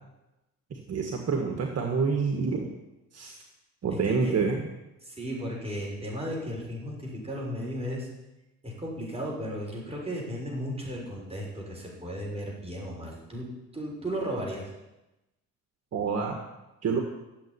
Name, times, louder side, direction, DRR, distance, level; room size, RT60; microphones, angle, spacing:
voice 1, 0.7-2.7 3.1-3.4 3.8-4.7 15.9-16.4 16.8-17.0, right 5 dB, 55° right, 3 dB, 1.9 m, -27 dB
voice 2, 5.0-8.1 8.6-14.7, equal, 20° right, -3 dB, 6.7 m, -35 dB
13.0 x 8.0 x 9.9 m, 0.98 s
cardioid pair, 90°, 30 cm